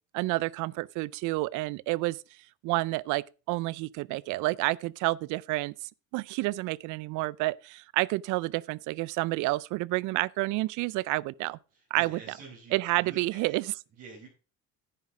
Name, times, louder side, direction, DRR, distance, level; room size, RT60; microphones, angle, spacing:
voice 1, 0.1-2.2 2.6-5.7 6.1-11.6 11.9-12.2 12.7-13.7, right 20 dB, 75° right, 0.5 m, -29 dB
voice 2, 11.7-13.6 14.0-14.3, right 4 dB, 55° right, 4.4 m, -48 dB
10.0 x 7.3 x 4.8 m
cardioid pair, 145°, 30 cm